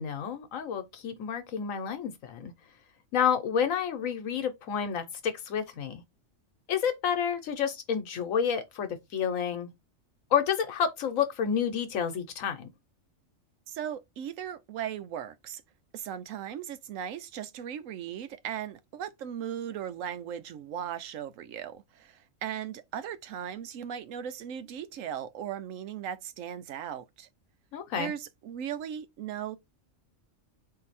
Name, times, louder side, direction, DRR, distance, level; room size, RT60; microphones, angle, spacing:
voice 1, 0.0-2.5 3.1-6.0 6.7-9.7 10.3-12.7 27.7-28.1, left 7 dB, 90° left, 1.2 m, -29 dB
voice 2, 13.7-15.6 15.9-27.3 28.0-29.6, right 9 dB, 85° right, 1.0 m, -37 dB
3.8 x 2.7 x 4.1 m
omnidirectional pair, 1.3 m